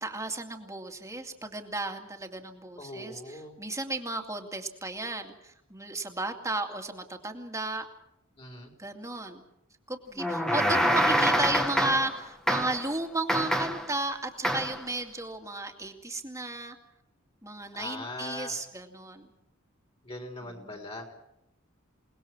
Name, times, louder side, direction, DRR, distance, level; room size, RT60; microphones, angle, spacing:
voice 1, 0.0-7.8 8.8-9.4 9.9-16.8 17.4-19.3 20.4-20.8, right 2 dB, 15° right, 4 dB, 2.4 m, -34 dB
voice 2, 2.8-3.6 8.4-8.7 17.7-18.6 20.0-21.1, left 2 dB, 30° left, 3 dB, 4.0 m, -40 dB
sound 1, 10.2-12.2 12.5-12.9 13.3-13.9 14.4-14.8, equal, 5° left, 1.7 m, -26 dB
28.5 x 19.5 x 6.1 m, 0.83 s
head